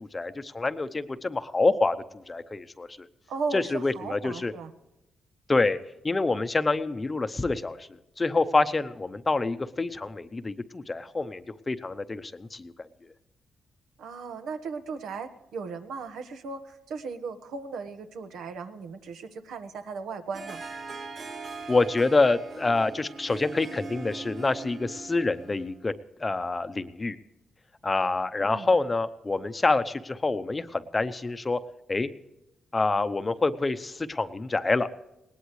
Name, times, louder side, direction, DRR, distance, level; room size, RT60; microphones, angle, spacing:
voice 1, 0.0-3.1 3.5-4.5 5.5-5.8 6.0-12.9 21.7-25.9 26.2-27.2 27.8-31.6 31.9-32.1 32.7-34.9, left 3 dB, 20° left, 11 dB, 0.7 m, -27 dB
voice 2, 3.3-4.7 14.0-20.6 28.4-28.7, right 4 dB, 85° right, 8 dB, 1.4 m, -36 dB
Harp, 20.3-25.8, right 4 dB, 55° right, 2.7 m, -40 dB
19.5 x 18.5 x 3.2 m, 0.93 s
cardioid pair, 130°, 0 cm